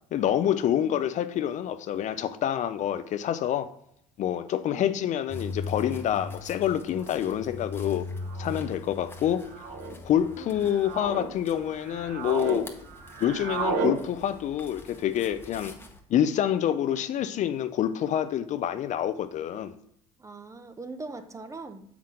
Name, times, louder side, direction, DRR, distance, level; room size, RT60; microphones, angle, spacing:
voice 1, 0.1-3.7 4.2-8.1 8.4-9.5 10.0-12.7 13.2-15.7 16.1-19.7, left 10 dB, 50° left, 0.5 m, -27 dB
voice 2, 0.6-1.0 4.6-5.0 10.4-10.7 20.2-21.8, right 3 dB, 20° right, 0.7 m, -42 dB
sound 1, 5.3-16.0, left 3 dB, 15° left, 1.0 m, -41 dB
sound 2, 5.9-6.0 7.0-7.3 8.2-8.6 9.5-9.9 10.6-11.3 11.7-12.6 12.9-14.0, right 3 dB, 75° right, 1.1 m, -32 dB
7.2 x 5.8 x 3.7 m
supercardioid pair, 95°, 16 cm